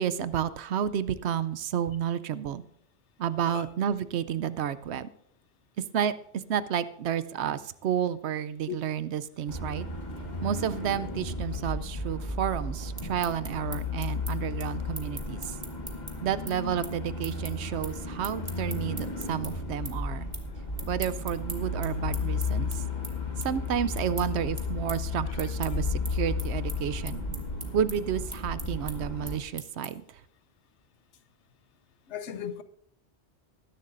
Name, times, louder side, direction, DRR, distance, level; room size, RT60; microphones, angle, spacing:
voice 1, 0.0-2.6 3.2-5.1 5.9-9.9 10.4-15.6 16.2-20.3 20.9-22.8 23.4-27.3 27.7-30.0, right 9 dB, 75° right, 0.9 m, -31 dB
sound 1, 9.5-29.4, left 3 dB, 40° left, 1.4 m, -34 dB
sound 2, 13.0-19.5 19.8-20.5 20.7-30.1, right 2 dB, 25° right, 1.4 m, -42 dB
voice 2, 32.1-32.6, left 9 dB, 90° left, 1.0 m, -36 dB
19.5 x 10.5 x 2.6 m
omnidirectional pair, 1.2 m